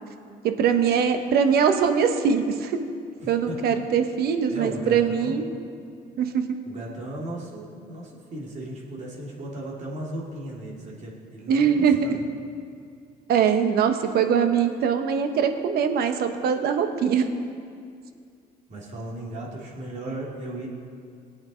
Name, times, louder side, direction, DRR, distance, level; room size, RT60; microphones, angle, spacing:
voice 1, 0.4-2.8 3.3-5.5 6.2-6.4 11.5-12.2 13.3-17.3, right 7 dB, 65° right, 7 dB, 1.1 m, -22 dB
voice 2, 3.2-3.8 4.5-5.4 6.6-12.2 18.7-20.7, right 1 dB, 45° right, -3 dB, 3.0 m, -36 dB
18.5 x 8.7 x 4.4 m, 2.3 s
cardioid pair, 110°, 17 cm